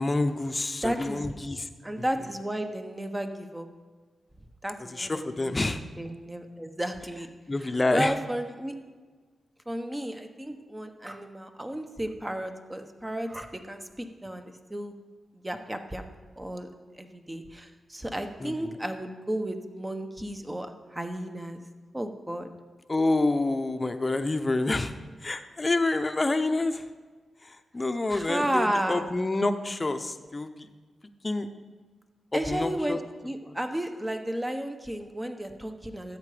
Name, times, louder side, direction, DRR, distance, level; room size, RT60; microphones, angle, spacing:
voice 1, 0.0-1.7 4.9-5.8 7.5-8.1 18.4-18.7 22.9-24.9 25.2-26.8 27.4-30.7 31.2-31.5 32.5-33.0 33.4-33.5, left 2 dB, 30° left, 8 dB, 0.9 m, -28 dB
voice 2, 0.8-1.3 1.8-3.7 4.6-7.3 7.6-8.7 9.7-14.9 15.3-16.0 16.4-16.7 16.9-21.6 21.9-22.5 28.1-29.0 32.3-36.2, right 1 dB, 15° right, 6 dB, 1.2 m, -33 dB
13.5 x 8.7 x 5.1 m, 1.4 s
cardioid pair, 70°, 0 cm